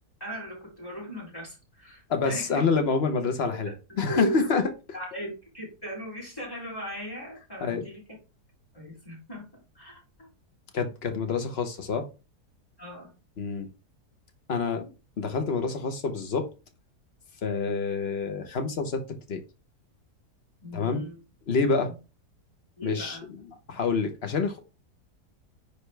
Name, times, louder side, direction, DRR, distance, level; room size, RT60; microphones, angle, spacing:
voice 1, 0.2-2.6 3.6-4.4 4.9-8.0 8.7-9.5 9.7-10.3 12.8-13.1 20.6-21.2 21.9-22.0 22.8-23.2, right 1 dB, 15° left, 4.0 m, -38 dB
voice 2, 2.1-3.7 4.0-4.6 7.6-7.9 10.7-12.1 13.4-13.7 14.5-16.5 17.4-19.0 19.3-19.4 20.7-21.0 21.5-21.9 22.8-23.4 23.7-24.7, left 4 dB, 45° left, 1.1 m, -27 dB
9.5 x 3.4 x 3.3 m
omnidirectional pair, 1.7 m